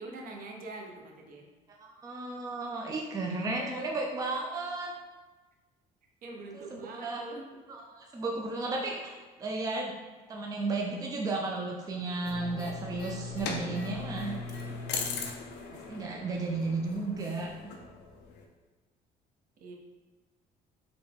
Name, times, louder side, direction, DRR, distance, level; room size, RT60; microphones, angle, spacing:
voice 1, 0.0-1.5 6.2-7.5 19.6-19.7, right 2 dB, 55° right, 1 dB, 0.7 m, -43 dB
voice 2, 1.8-4.9 6.5-7.2 7.7-9.9 10.3-14.4 15.7-17.7, right 3 dB, 20° right, 0 dB, 0.4 m, -34 dB
sound 1, 12.2-18.4, left 4 dB, 80° left, 0.5 m, -39 dB
4.0 x 2.2 x 3.4 m, 1.3 s
cardioid pair, 110°, 17 cm